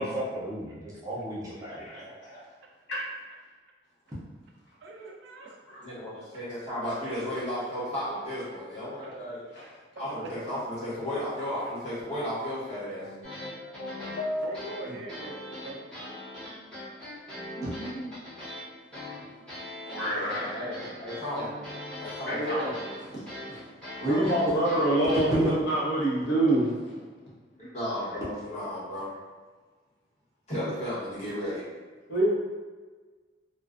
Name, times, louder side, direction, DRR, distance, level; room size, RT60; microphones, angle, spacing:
voice 1, 0.0-2.2 17.6-17.7 24.0-24.3 25.3-25.5, right 1 dB, 20° right, -9 dB, 0.5 m, -32 dB
voice 2, 1.9-2.4 2.9-3.0 9.5-9.7 17.3-18.1 19.9-20.5 22.2-23.1 23.5-23.6 24.0-26.7 27.6-27.7 32.1-32.3, right 1 dB, 70° left, -8 dB, 0.9 m, -27 dB
voice 3, 4.8-5.6 9.0-9.2 9.9-10.3 14.4-15.8, right 2 dB, 75° right, 1 dB, 0.4 m, -41 dB
voice 4, 5.8-9.4 10.0-13.1 20.0-21.5 22.0-22.4 24.1-24.3 27.1-27.2 27.5-29.1 30.5-31.6, equal, 35° left, -10 dB, 1.1 m, -34 dB
sound 1, 13.0-15.1, left 2 dB, 85° left, 0.5 m, -36 dB
sound 2, 13.2-25.3, left 1 dB, 5° left, 0.9 m, -41 dB
2.3 x 2.3 x 2.4 m, 1.4 s
head